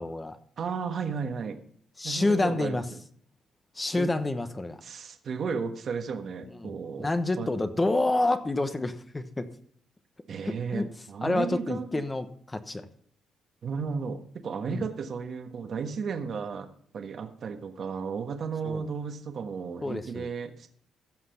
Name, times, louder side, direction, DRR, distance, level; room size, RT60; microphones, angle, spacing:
voice 1, 0.0-0.4 2.0-2.9 3.7-4.8 6.4-6.7 7.0-9.5 10.4-10.9 11.2-12.9 14.7-14.8 18.6-18.8 19.8-20.3, left 2 dB, 20° left, 9 dB, 1.0 m, -28 dB
voice 2, 0.6-1.6 2.0-3.0 3.9-4.1 4.8-7.1 7.4-7.5 10.3-12.0 13.6-20.7, right 5 dB, 55° right, 6 dB, 1.4 m, -34 dB
15.5 x 6.0 x 5.7 m, 0.62 s
cardioid pair, 90°, 0 cm